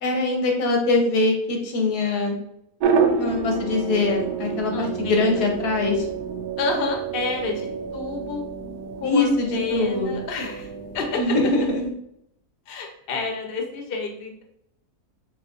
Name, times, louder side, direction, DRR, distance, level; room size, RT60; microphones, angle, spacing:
voice 1, 0.0-2.4 3.2-6.1 9.0-10.2 11.1-11.9, left 2 dB, 85° left, 2 dB, 1.4 m, -23 dB
sound 1, 2.8-11.9, right 5 dB, 90° right, 1.1 m, -28 dB
voice 2, 4.7-5.4 6.6-8.4 9.0-10.7 10.9-11.3 12.7-14.4, left 3 dB, 50° left, 3 dB, 0.7 m, -29 dB
4.7 x 3.1 x 2.5 m, 0.76 s
omnidirectional pair, 1.6 m